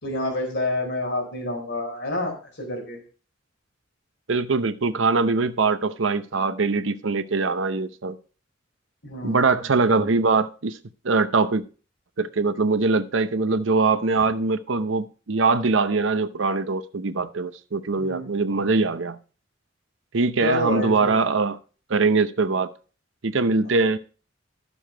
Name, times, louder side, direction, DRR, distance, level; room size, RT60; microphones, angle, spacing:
voice 1, 0.0-3.0 9.0-9.6 17.9-18.2 18.5-18.7 20.4-21.2, left 1 dB, 60° left, 4.3 m, -28 dB
voice 2, 4.3-8.2 9.2-10.8 11.0-11.6 12.2-19.2 20.1-21.6 21.9-22.7 23.2-24.0, right 3 dB, 80° right, 0.8 m, -22 dB
12.0 x 7.1 x 4.5 m
head